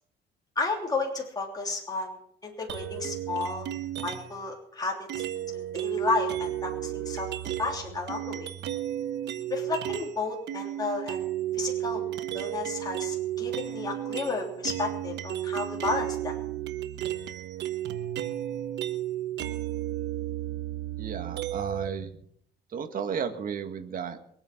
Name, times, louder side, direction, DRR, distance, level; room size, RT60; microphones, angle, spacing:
voice 1, 0.5-2.2 2.4-3.7 4.0-5.1 5.5-7.3 7.6-8.5 9.5-11.2 11.6-12.0 12.3-16.4, left 3 dB, 20° left, -1 dB, 3.2 m, -32 dB
sound 1, 2.7-4.4 5.1-10.2 10.5-21.9, right 12 dB, 75° right, 1.2 m, -33 dB
voice 2, 21.0-22.1 22.7-24.2, right 7 dB, 50° right, 7 dB, 1.9 m, -33 dB
22.5 x 8.9 x 6.0 m, 0.68 s
cardioid pair, 120°, 18 cm